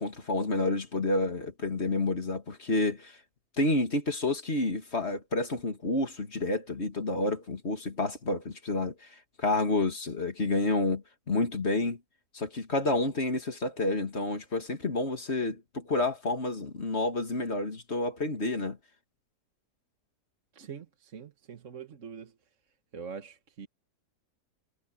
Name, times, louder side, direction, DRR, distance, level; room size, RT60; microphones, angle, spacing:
voice 1, 0.0-3.2 3.6-8.9 9.4-12.0 12.3-18.8, left 2 dB, 45° left, 2.8 m, -29 dB
voice 2, 20.5-22.3 22.9-23.7, right 6 dB, 55° right, 1.7 m, -43 dB
omnidirectional pair, 1.7 m